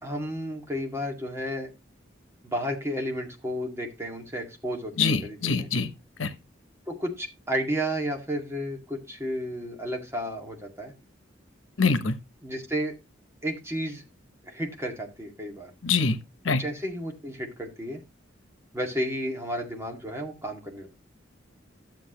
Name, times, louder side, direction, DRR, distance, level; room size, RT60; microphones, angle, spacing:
voice 1, 0.0-1.7 2.4-5.7 6.9-10.9 12.4-12.9 13.4-14.0 14.5-15.7 16.5-18.0 18.7-20.9, equal, 15° right, 2.1 m, -32 dB
voice 2, 5.0-5.9 6.2-6.3 11.8-12.2 15.8-16.2 16.4-16.6, left 4 dB, 90° left, 1.1 m, -24 dB
13.0 x 7.4 x 3.0 m
head